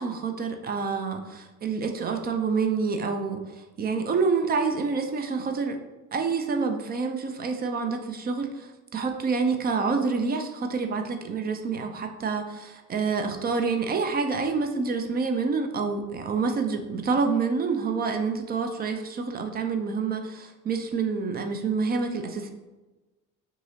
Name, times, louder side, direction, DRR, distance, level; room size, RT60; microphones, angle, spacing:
voice 1, 0.0-3.4 3.8-5.8 6.1-8.5 8.9-22.5, right 4 dB, 20° right, 5 dB, 0.4 m, -27 dB
5.4 x 2.8 x 2.7 m, 1.1 s
figure-of-eight pair, 55°, 46 cm